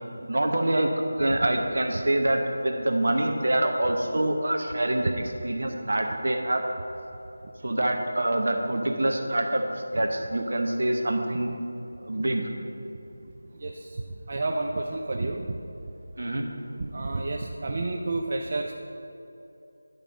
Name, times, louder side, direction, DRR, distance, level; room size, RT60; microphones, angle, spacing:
voice 1, 0.3-5.1 5.4-6.6 7.6-9.6 9.9-11.5 12.0-12.5 16.2-16.5, right 1 dB, 60° right, 3 dB, 0.9 m, -25 dB
voice 2, 13.5-14.0 14.3-15.5 16.8-18.7, right 2 dB, 30° right, 1 dB, 0.3 m, -30 dB
11.0 x 3.7 x 5.1 m, 2.9 s
figure-of-eight pair, 175°, 0 cm